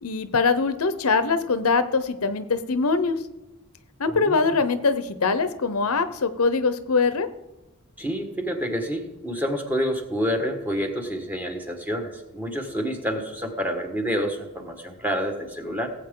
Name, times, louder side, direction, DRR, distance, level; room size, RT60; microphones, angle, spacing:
voice 1, 0.0-3.2 4.0-7.3, left 4 dB, 80° left, 12 dB, 0.8 m, -23 dB
voice 2, 4.1-4.6 8.0-15.9, equal, 10° right, 4 dB, 1.4 m, -28 dB
18.5 x 8.0 x 3.8 m, 1.0 s
head